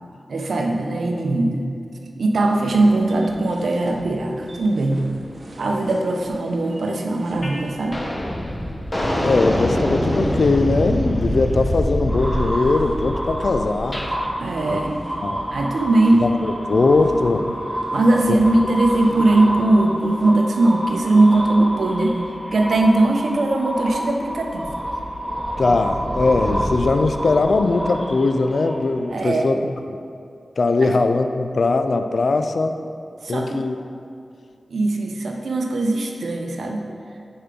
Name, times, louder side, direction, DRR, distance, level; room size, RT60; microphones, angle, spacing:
voice 1, 0.3-1.7 2.2-5.1 5.6-8.0 14.4-15.1 15.5-16.3 17.9-22.2 22.5-24.7 29.1-29.6 30.8-31.0 33.2-33.6 34.7-36.8, right 2 dB, 90° right, 2 dB, 0.6 m, -20 dB
sound 1, 2.5-20.3, right 1 dB, 55° right, 0.9 m, -42 dB
sound 2, 7.4-7.6 7.9-14.1, equal, 30° left, 0.8 m, -24 dB
voice 2, 9.2-14.1 14.7-14.8 15.2-15.4 16.2-17.8 18.3-18.4 25.6-29.6 30.6-32.8 33.3-33.8, left 3 dB, 70° left, 7 dB, 0.3 m, -20 dB
sound 3, 12.1-29.1, equal, 15° right, 0.8 m, -29 dB
6.6 x 4.4 x 3.8 m, 2.4 s
wide cardioid pair, 70°, 0 cm